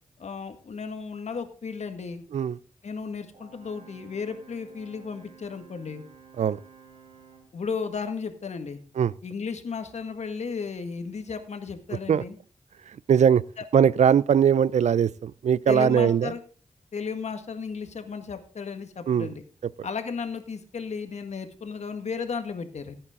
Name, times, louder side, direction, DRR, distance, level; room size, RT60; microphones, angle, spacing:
voice 1, 0.2-2.2 2.8-6.0 7.5-8.8 9.2-12.4 13.6-13.7 15.7-16.4 16.9-19.4 19.8-22.9, left 5 dB, 70° left, 1.8 m, -34 dB
Brass instrument, 3.3-7.6, right 6 dB, 50° right, 5.1 m, -52 dB
voice 2, 13.1-13.4 13.7-16.3 19.1-19.3, right 8 dB, 75° right, 0.4 m, -20 dB
15.5 x 8.8 x 3.8 m
cardioid pair, 70°, 12 cm